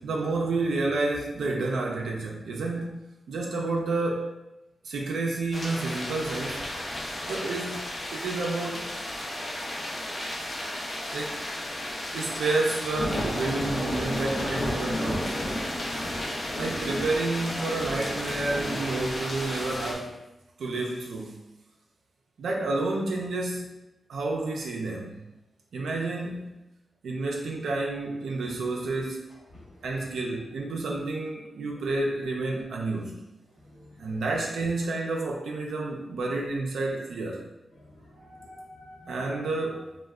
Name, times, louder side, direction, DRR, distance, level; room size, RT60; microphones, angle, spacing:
voice 1, 0.0-3.0 3.3-4.3 4.8-6.6 7.3-8.9 11.1-11.4 12.1-15.4 16.6-20.2 20.6-21.4 22.4-23.8 24.1-25.2 25.7-26.5 27.0-29.2 29.8-33.2 34.0-37.4 39.1-39.9, right 2 dB, 85° right, -1 dB, 0.3 m, -30 dB
sound 1, 5.5-19.9, left 1 dB, 50° left, 0.6 m, -32 dB
voice 2, 33.7-34.2 37.8-39.2, left 1 dB, 65° left, -5 dB, 1.0 m, -49 dB
2.2 x 2.0 x 3.4 m, 0.98 s
cardioid pair, 45°, 0 cm